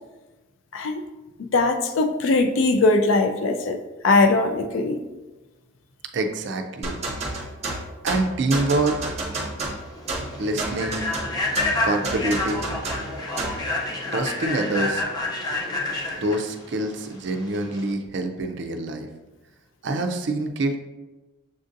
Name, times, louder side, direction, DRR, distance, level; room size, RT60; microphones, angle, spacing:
voice 1, 1.4-5.0, left 3 dB, 75° left, 6 dB, 0.4 m, -21 dB
voice 2, 6.1-7.0 8.0-9.2 10.3-11.1 11.8-12.8 14.1-15.0 16.2-19.1 19.8-20.8, right 2 dB, 60° right, 5 dB, 0.4 m, -26 dB
sound 1, 6.8-13.7, right 2 dB, 35° right, 0.7 m, -31 dB
Human voice / Train, 9.2-17.9, left 2 dB, 20° left, 0.5 m, -29 dB
6.9 x 2.6 x 2.5 m, 1.1 s
head